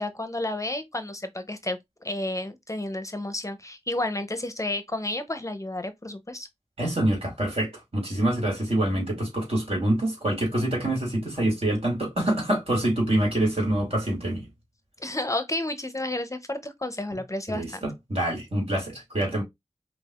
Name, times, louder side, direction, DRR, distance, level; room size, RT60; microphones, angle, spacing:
voice 1, 0.0-1.8 2.0-6.5 15.0-17.8, left 1 dB, 30° left, 0.6 m, -31 dB
voice 2, 6.8-14.4 17.5-19.4, right 1 dB, 60° right, 2.1 m, -26 dB
5.3 x 2.4 x 2.3 m
wide cardioid pair, 40°, 11 cm